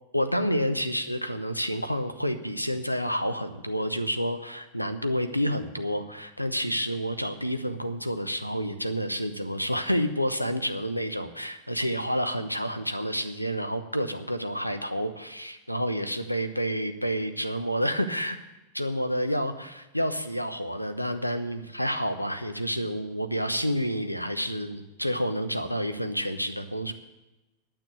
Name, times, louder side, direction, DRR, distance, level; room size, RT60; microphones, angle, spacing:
voice 1, 0.1-18.4 18.7-26.9, equal, 90° left, 9 dB, 0.8 m, -29 dB
9.1 x 8.8 x 9.3 m, 1.0 s
figure-of-eight pair, 90°, 0 cm